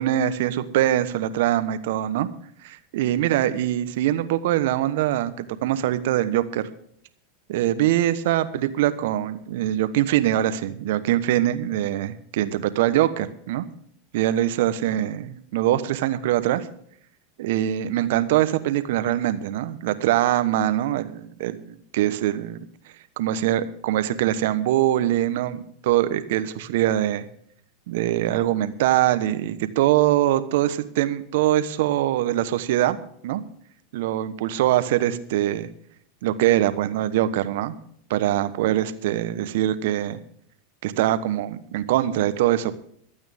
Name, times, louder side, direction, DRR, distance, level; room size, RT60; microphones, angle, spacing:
voice 1, 0.0-2.3 2.6-6.6 7.5-13.6 14.1-16.7 17.4-22.6 23.2-27.3 27.9-33.0 33.2-33.4 33.9-35.7 36.2-37.8 38.1-40.2 40.8-42.7, right 13 dB, 65° right, 12 dB, 1.1 m, -23 dB
23.0 x 8.8 x 3.6 m, 0.64 s
hypercardioid pair, 95°, 0 cm